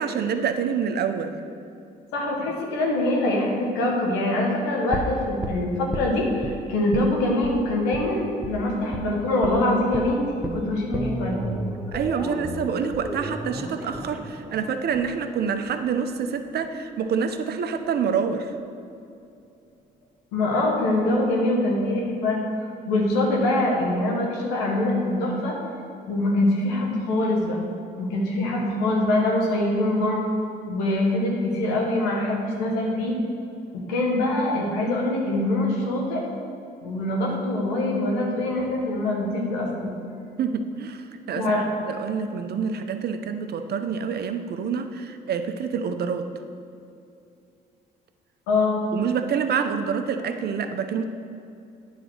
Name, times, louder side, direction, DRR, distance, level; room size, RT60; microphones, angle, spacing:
voice 1, 0.0-1.3 11.9-18.5 40.4-41.6 41.9-46.3 48.9-51.0, right 6 dB, 55° right, 8 dB, 0.7 m, -27 dB
voice 2, 2.1-10.2 10.5-11.4 20.3-22.4 22.9-25.5 26.1-27.6 28.0-30.2 30.7-33.1 33.7-36.2 36.8-40.0 41.4-41.6 48.5-48.8, left 1 dB, 85° left, -2 dB, 1.4 m, -24 dB
sound 1, 4.9-6.5 6.9-7.1 7.4-7.6 7.9-8.1 8.4-8.6 8.9-9.1 9.4-9.6 9.9-15.9 16.2-16.3, equal, 5° right, 1.1 m, -33 dB
9.4 x 4.0 x 6.3 m, 2.6 s
hypercardioid pair, 55°, 20 cm